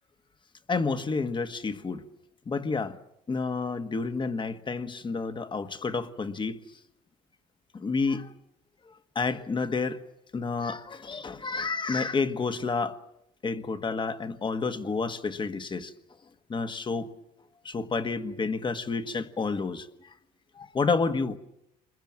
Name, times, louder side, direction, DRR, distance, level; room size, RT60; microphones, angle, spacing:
voice 1, 0.7-2.0 2.4-3.0 3.3-6.8 7.7-8.3 8.9-10.0 10.3-13.0 13.4-15.9 16.5-17.1 17.6-20.1 20.5-21.4, left 4 dB, 30° left, 1.5 m, -30 dB
28.0 x 22.0 x 7.5 m
cardioid pair, 110°, 17 cm